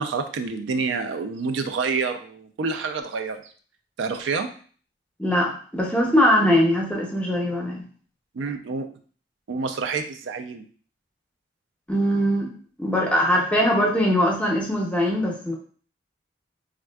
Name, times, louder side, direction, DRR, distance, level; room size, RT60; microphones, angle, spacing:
voice 1, 0.0-3.5 4.0-4.5 8.3-8.9 9.5-10.6, right 4 dB, 80° right, 7 dB, 0.4 m, -28 dB
voice 2, 5.2-7.8 11.9-12.5 12.8-15.6, equal, 5° left, -1 dB, 0.5 m, -21 dB
3.5 x 2.4 x 2.2 m, 0.43 s
head